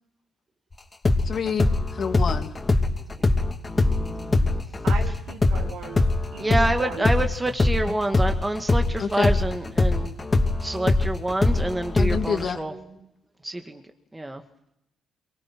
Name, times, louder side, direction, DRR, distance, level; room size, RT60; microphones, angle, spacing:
sound 1, 1.0-8.9 9.2-12.5, left 2 dB, 25° left, 2.9 m, -22 dB
voice 1, 1.2-1.7 1.9-2.5 9.0-9.3 12.0-12.6, left 6 dB, 50° left, 5 dB, 2.6 m, -27 dB
voice 2, 3.0-3.5 3.9-4.5 12.7-13.1, right 3 dB, 35° right, 7 dB, 4.6 m, -47 dB
voice 3, 4.8-7.1 9.6-9.7, right 6 dB, 85° right, 3 dB, 3.6 m, -37 dB
voice 4, 6.4-10.1 10.6-12.7 13.4-13.8 14.1-14.4, right 1 dB, 15° right, 5 dB, 2.0 m, -27 dB
23.5 x 23.0 x 6.1 m, 0.80 s
cardioid pair, 90°, 0 cm